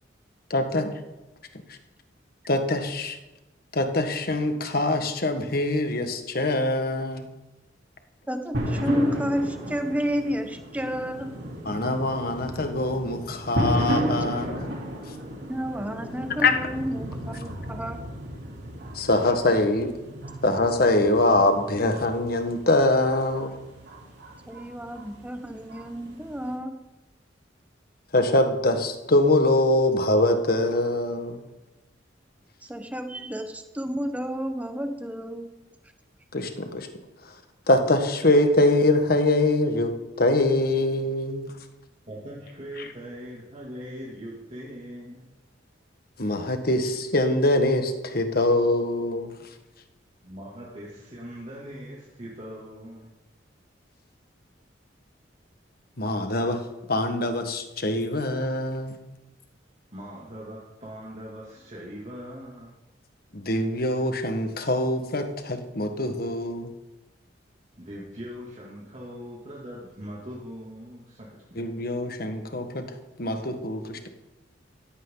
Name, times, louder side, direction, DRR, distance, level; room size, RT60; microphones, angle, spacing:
voice 1, 0.5-0.9 1.7-1.8 2.5-3.2 3.7-7.3 11.7-14.7 16.4-16.5 18.9-19.9 20.4-23.6 28.1-31.4 36.3-36.9 37.2-37.3 37.7-41.5 42.8-42.9 46.2-49.4 56.0-59.0 63.3-66.7 71.6-72.9 73.2-74.1, left 2 dB, 55° left, 6 dB, 1.6 m, -24 dB
voice 2, 8.3-11.4 15.5-18.0 24.5-26.8 32.6-35.6, equal, 10° right, 7 dB, 1.1 m, -31 dB
sound 1, 8.5-26.5, equal, 65° right, 3.5 m, -34 dB
voice 3, 42.1-45.2 50.2-53.1 59.9-62.7 67.8-71.6, equal, 35° right, -5 dB, 2.7 m, -41 dB
16.0 x 14.5 x 4.0 m, 1.1 s
head